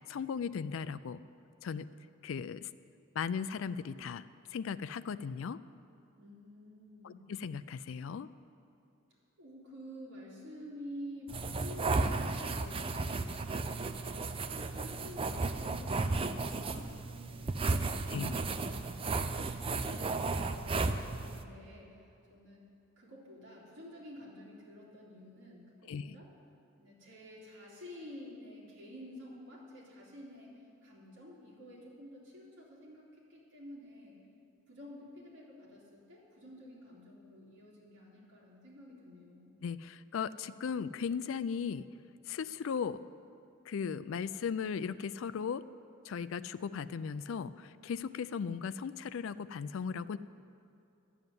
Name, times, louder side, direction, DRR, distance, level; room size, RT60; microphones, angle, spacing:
voice 1, 0.1-1.2 1.6-1.9 2.2-2.7 3.2-4.2 4.5-5.6 7.0-8.3 18.1-18.3 25.9-26.2 39.6-41.9 42.3-43.0 43.7-45.6 46.0-50.2, left 6 dB, 65° left, 14 dB, 0.3 m, -37 dB
voice 2, 6.2-7.3 9.4-22.6 23.0-26.3 26.8-30.5 30.8-34.2 34.7-39.5, left 1 dB, 55° right, -6 dB, 3.2 m, -50 dB
sound 1, 11.3-21.4, right 3 dB, 25° right, 0.4 m, -34 dB
11.0 x 7.1 x 9.3 m, 2.6 s
head